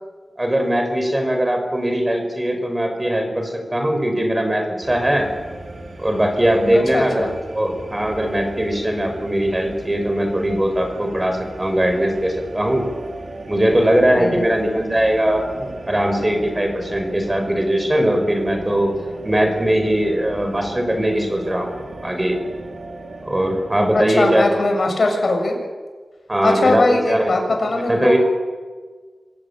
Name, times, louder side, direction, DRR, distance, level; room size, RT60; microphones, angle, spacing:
voice 1, 0.4-5.3 6.0-12.9 13.5-18.9 19.2-22.4 23.2-24.6 26.3-27.3 27.7-28.2, right 1 dB, 20° right, 5 dB, 5.8 m, -20 dB
sound 1, 4.8-24.3, right 2 dB, 70° right, 4.0 m, -36 dB
voice 2, 6.7-7.3 14.2-14.5 23.9-25.6 26.4-28.2, left 2 dB, 65° left, 3 dB, 7.1 m, -20 dB
26.0 x 17.0 x 8.9 m, 1.4 s
wide cardioid pair, 70°, 0 cm